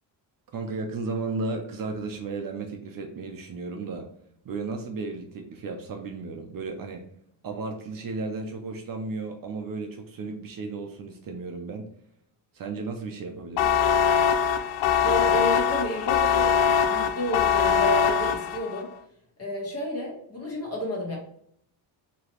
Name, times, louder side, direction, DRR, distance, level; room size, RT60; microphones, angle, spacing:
voice 1, 0.5-4.1 4.4-7.0 7.4-11.9 12.5-13.7, right 3 dB, 45° right, 3 dB, 0.6 m, -34 dB
sound 1, 13.6-18.8, left 7 dB, 70° left, 0.5 m, -22 dB
voice 2, 15.0-18.9 19.4-21.2, left 1 dB, 30° left, -2 dB, 1.5 m, -31 dB
4.8 x 3.0 x 3.0 m, 0.67 s
cardioid pair, 150°, 47 cm